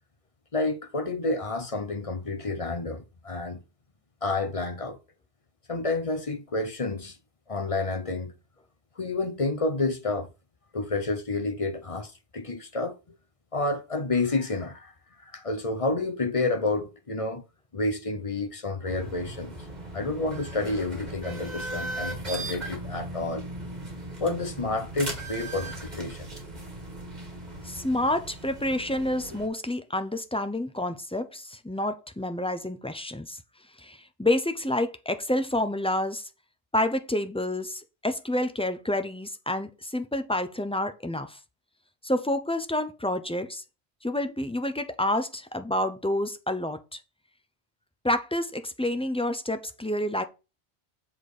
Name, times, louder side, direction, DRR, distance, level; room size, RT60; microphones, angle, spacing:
voice 1, 0.5-3.6 4.2-5.0 5.7-7.2 7.5-8.3 9.0-10.3 10.7-13.2 13.5-14.9 15.2-17.4 17.7-19.5 19.9-23.5 24.2-26.3, left 2 dB, 35° left, 0.9 m, -29 dB
sound 1, 18.9-29.5, right 1 dB, 40° right, 2.2 m, -38 dB
voice 2, 27.6-33.4 33.8-36.3 36.7-41.4 42.0-43.6 44.0-47.0 48.0-50.2, left 1 dB, 5° left, 0.6 m, -28 dB
7.4 x 4.3 x 4.9 m
omnidirectional pair, 1.1 m